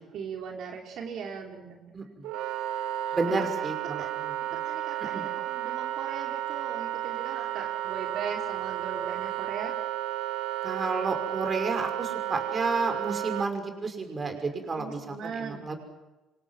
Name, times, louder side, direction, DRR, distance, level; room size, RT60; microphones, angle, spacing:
voice 1, 0.1-2.0 3.0-3.2 3.8-4.1 4.5-9.7 14.7-15.7, right 6 dB, 60° right, 1 dB, 4.0 m, -39 dB
voice 2, 1.9-2.3 3.1-4.0 4.5-4.6 5.1-5.2 10.6-15.7, right 3 dB, 30° right, 6 dB, 6.1 m, -31 dB
Wind instrument woodwind instrument, 2.2-13.5, right 13 dB, 80° right, 1.7 m, -32 dB
27.0 x 26.0 x 7.7 m, 1.1 s
cardioid pair, 110°, 0 cm